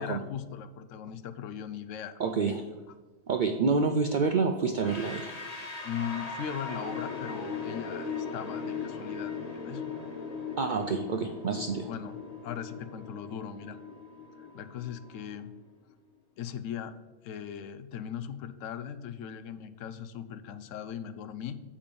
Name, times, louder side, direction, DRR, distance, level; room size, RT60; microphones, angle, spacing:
voice 1, 0.0-2.2 5.8-9.8 11.9-12.2 12.4-13.8 14.4-15.5 16.4-16.9 17.2-21.6, left 8 dB, 75° left, 12 dB, 0.9 m, -39 dB
voice 2, 2.2-2.6 3.3-5.3 10.6-11.9, right 4 dB, 70° right, 5 dB, 0.4 m, -28 dB
sound 1, 3.3-15.2, right 3 dB, 5° right, 0.7 m, -61 dB
sound 2, 4.8-15.7, left 5 dB, 35° left, 0.8 m, -39 dB
6.9 x 4.9 x 5.2 m, 1.3 s
omnidirectional pair, 1.4 m